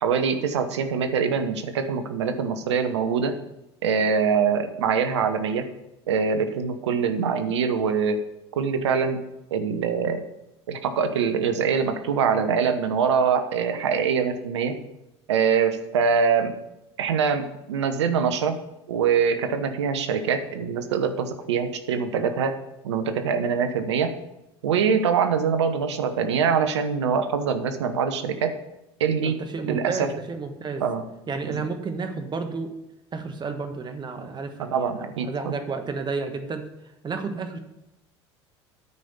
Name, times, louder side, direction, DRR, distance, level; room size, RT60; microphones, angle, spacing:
voice 1, 0.0-3.4 3.8-5.7 6.1-8.2 8.6-9.2 9.5-10.2 10.7-14.8 15.3-16.5 17.0-18.6 18.9-22.5 22.8-24.1 24.6-28.5 29.0-29.4 29.7-30.1 30.8-31.0 31.4-31.7 34.6-35.5, right 6 dB, 80° right, 9 dB, 0.9 m, -24 dB
voice 2, 29.2-30.9 31.3-32.7 33.1-36.6 37.0-37.6, right 4 dB, 30° right, 7 dB, 1.4 m, -31 dB
9.4 x 5.0 x 7.2 m, 0.90 s
hypercardioid pair, 75°, 14 cm